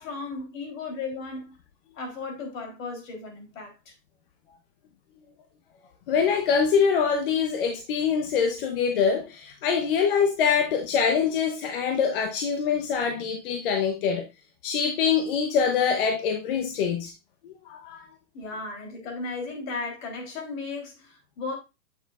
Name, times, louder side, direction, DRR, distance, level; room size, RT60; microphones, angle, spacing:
voice 1, 0.0-1.5 1.9-3.9 18.3-21.6, left 3 dB, 55° left, 3.6 m, -35 dB
voice 2, 6.1-14.2 14.6-17.1 17.7-18.1, left 6 dB, 35° left, 0.8 m, -24 dB
8.4 x 6.8 x 2.4 m
hypercardioid pair, 160°, 47 cm